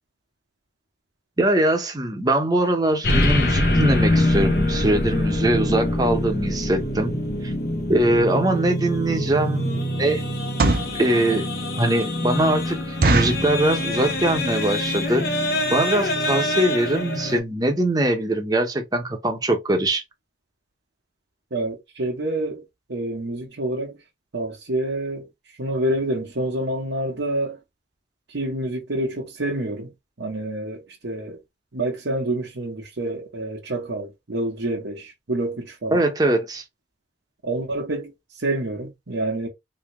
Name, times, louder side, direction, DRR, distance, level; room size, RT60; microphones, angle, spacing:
voice 1, 1.4-7.1 7.4-7.5 7.9-10.2 10.9-11.5 11.8-20.0 35.9-36.6, right 1 dB, 20° right, 0.8 m, -22 dB
sound 1, 3.0-17.4, left 1 dB, 55° left, 0.9 m, -24 dB
sound 2, 8.8-8.9 9.4-9.6 10.3-11.0 11.5-11.6 12.0-12.1 12.4-12.5 13.0-13.5 14.1-14.4 14.7-14.8 15.0-15.2 15.8-15.9 16.1-16.3 16.6-16.7 16.9-17.0, right 3 dB, 55° right, 0.6 m, -22 dB
voice 2, 21.5-22.6 22.9-24.0 24.3-27.6 28.3-29.9 30.2-31.4 31.7-36.0 37.4-39.5, right 1 dB, 90° right, 1.0 m, -27 dB
3.7 x 2.8 x 3.0 m
head